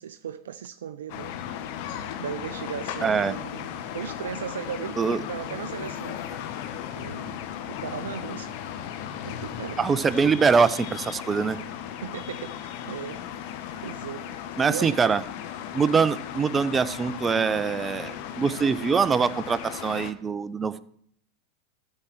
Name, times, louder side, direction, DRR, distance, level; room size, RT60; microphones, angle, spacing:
voice 1, 0.0-1.3 2.2-6.2 6.9-7.4 7.6-8.6 9.2-9.8 12.0-13.2 13.8-15.0, right 8 dB, 75° right, 0.4 m, -37 dB
sound 1, 1.1-20.1, left 9 dB, 55° left, 1.0 m, -36 dB
voice 2, 3.0-3.3 5.0-5.2 9.8-11.6 14.6-15.2 15.7-20.9, right 5 dB, 20° right, 0.5 m, -23 dB
13.0 x 4.4 x 6.2 m
hypercardioid pair, 95°, 0 cm